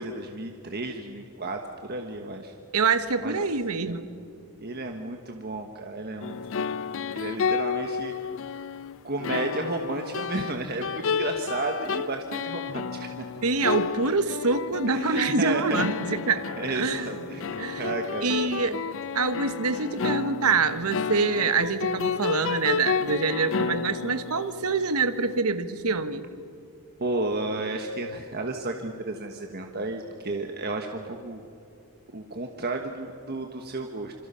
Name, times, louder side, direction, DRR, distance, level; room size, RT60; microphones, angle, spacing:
voice 1, 0.0-2.5 3.2-3.4 3.8-4.2 4.6-6.8 7.1-8.1 9.0-13.2 14.9-15.8 16.6-18.8 27.0-31.4 32.1-34.1, right 2 dB, 45° right, 4 dB, 1.4 m, -33 dB
voice 2, 2.7-4.1 13.4-17.1 17.6-17.9 18.2-18.8 19.1-26.3, right 4 dB, 85° right, 11 dB, 1.3 m, -26 dB
sound 1, 6.2-25.2, left 6 dB, 60° left, 0.5 m, -31 dB
27.0 x 25.5 x 5.7 m, 2.5 s
head